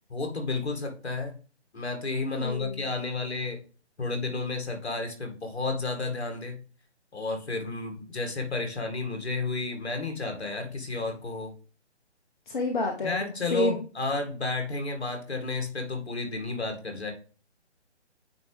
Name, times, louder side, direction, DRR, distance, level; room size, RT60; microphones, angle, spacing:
voice 1, 0.1-1.4 1.7-3.6 4.0-6.6 7.1-11.5 13.0-17.1, left 3 dB, 65° left, 4 dB, 2.0 m, -32 dB
voice 2, 2.3-2.9 12.5-13.8, left 2 dB, 45° left, 2 dB, 1.0 m, -29 dB
9.0 x 3.5 x 3.3 m, 0.38 s
figure-of-eight pair, 145°, 35 cm